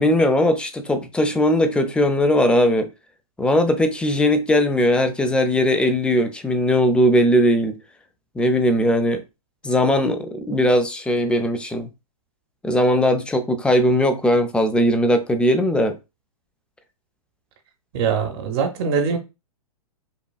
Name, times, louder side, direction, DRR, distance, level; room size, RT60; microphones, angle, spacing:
voice 1, 0.0-2.9 3.4-7.8 8.4-9.2 9.6-11.9 12.6-16.0, left 1 dB, 5° left, 0.4 m, -19 dB
voice 2, 17.9-19.2, right 6 dB, 45° right, 0.7 m, -22 dB
5.3 x 2.3 x 2.3 m
hypercardioid pair, 115°, 19 cm